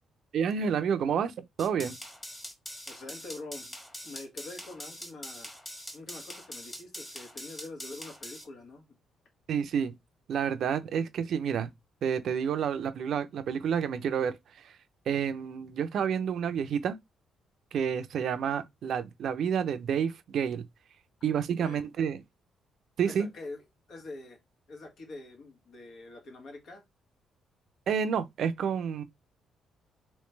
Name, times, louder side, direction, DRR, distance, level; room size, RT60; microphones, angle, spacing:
voice 1, 0.3-1.3 1.6-2.0 9.5-9.9 10.3-11.7 12.0-14.3 14.6-14.7 15.1-17.0 17.7-20.7 21.2-22.2 23.0-23.3 27.9-29.0, right 7 dB, 65° right, 0.5 m, -29 dB
sound 1, 1.6-8.4, equal, 15° left, 1.4 m, -43 dB
voice 2, 2.9-3.8 4.0-5.6 5.9-9.0 21.4-21.8 23.0-23.6 23.9-24.4 24.7-26.8, left 2 dB, 65° left, 1.3 m, -45 dB
3.2 x 3.1 x 3.3 m
cardioid pair, 90°, 0 cm